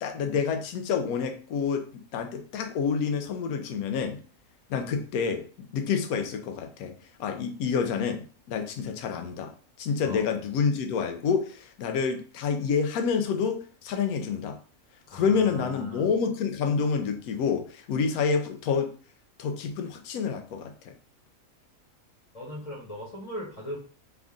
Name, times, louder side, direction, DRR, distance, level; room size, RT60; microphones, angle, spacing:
voice 1, 0.0-1.9 2.1-4.2 4.7-6.9 7.2-9.5 9.8-14.6 15.1-18.9 19.4-20.9, left 6 dB, 85° left, 6 dB, 1.1 m, -28 dB
voice 2, 15.1-16.1 22.3-23.8, equal, 30° left, -3 dB, 1.0 m, -39 dB
3.5 x 2.5 x 3.6 m, 0.40 s
omnidirectional pair, 1.5 m